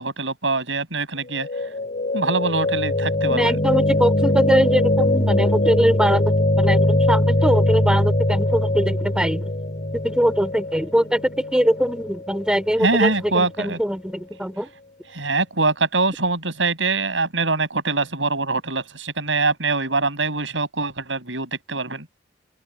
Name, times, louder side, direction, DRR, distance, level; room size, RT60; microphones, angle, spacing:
voice 1, 0.0-1.5 2.1-3.6 12.8-13.8 15.1-22.1, right 3 dB, 80° right, 7.1 m, -23 dB
sound 1, 1.3-13.4, left 1 dB, 45° left, 3.2 m, -22 dB
voice 2, 3.3-9.5 9.9-14.7, equal, 5° right, 3.1 m, -22 dB
open air
head